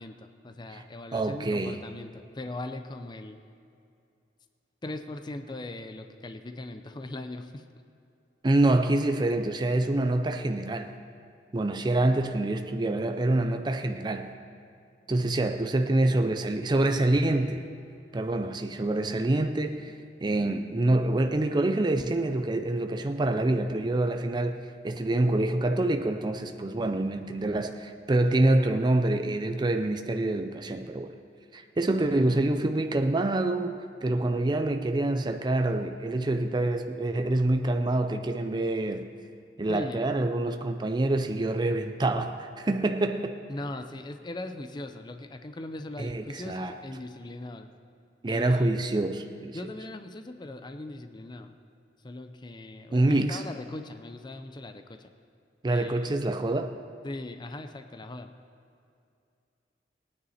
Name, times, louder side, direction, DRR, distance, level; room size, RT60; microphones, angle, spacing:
voice 1, 0.0-3.4 4.8-7.6 39.7-40.0 43.5-47.7 48.3-48.7 49.5-51.5 52.0-55.1 55.7-56.1 57.0-58.3, left 2 dB, 25° left, 0.5 m, -39 dB
voice 2, 1.1-1.8 8.4-11.0 11.5-14.4 15.1-17.6 18.1-19.9 20.2-31.2 31.5-39.1 39.6-43.4 46.0-46.7 48.2-49.6 52.9-53.4 55.6-56.7, right 2 dB, 25° right, 0.5 m, -26 dB
18.0 x 9.5 x 4.2 m
head